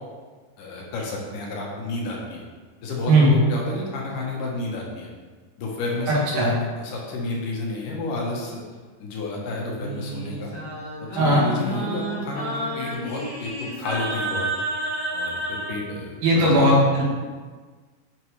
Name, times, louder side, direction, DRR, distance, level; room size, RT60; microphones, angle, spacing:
voice 1, 0.6-2.4 2.8-5.1 5.6-8.6 9.0-10.5 11.1-13.5 13.8-14.5 15.1-16.7, left 2 dB, 70° left, -2 dB, 2.6 m, -31 dB
voice 2, 6.1-6.5 11.2-11.4 16.2-17.0, right 1 dB, 80° right, -5 dB, 3.6 m, -17 dB
Singing, 9.7-15.8, right 1 dB, 15° left, 1.1 m, -30 dB
9.2 x 5.2 x 3.2 m, 1.4 s
omnidirectional pair, 4.1 m